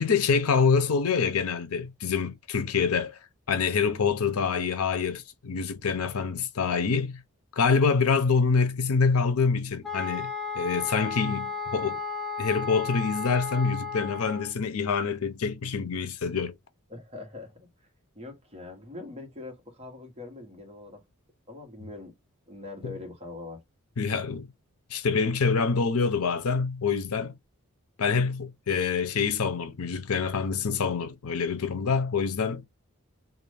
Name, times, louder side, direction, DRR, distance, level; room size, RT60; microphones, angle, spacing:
voice 1, 0.0-3.2 3.5-7.1 7.6-12.0 12.4-16.6 22.8-22.9 24.0-24.5 24.9-27.4 28.0-32.7, left 5 dB, 80° left, 0.6 m, -26 dB
sound 1, 9.8-14.5, left 5 dB, ahead, 0.4 m, -34 dB
voice 2, 16.9-17.9 18.1-21.0 21.5-22.1 22.5-23.6, left 2 dB, 30° right, 1.1 m, -42 dB
2.6 x 2.5 x 3.2 m
head